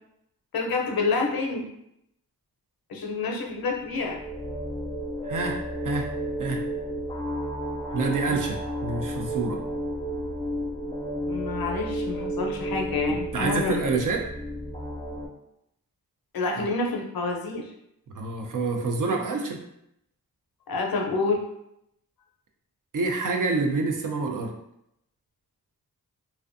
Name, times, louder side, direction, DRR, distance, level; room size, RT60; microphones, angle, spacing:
voice 1, 0.5-1.7 2.9-4.2 8.2-8.4 11.3-13.8 16.3-17.7 20.7-21.4, left 3 dB, 70° left, 1 dB, 0.6 m, -28 dB
sound 1, 3.7-15.3, equal, 15° left, 0.5 m, -32 dB
voice 2, 5.2-6.1 6.4-6.6 7.9-9.6 13.3-14.3 16.6-16.7 18.1-19.6 22.9-24.5, right 3 dB, 55° right, 3 dB, 0.5 m, -27 dB
2.5 x 2.2 x 2.5 m, 0.79 s
cardioid pair, 55°, 37 cm